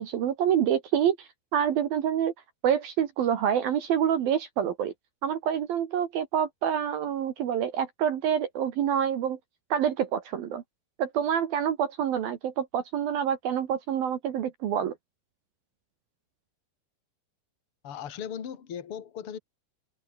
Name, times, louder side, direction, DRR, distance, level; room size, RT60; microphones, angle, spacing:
voice 1, 0.0-2.3 2.6-4.9 5.2-9.4 9.7-10.6 11.0-14.9, right 9 dB, 60° right, 2.6 m, -27 dB
voice 2, 17.8-19.4, left 8 dB, 35° left, 2.5 m, -37 dB
omnidirectional pair, 5.9 m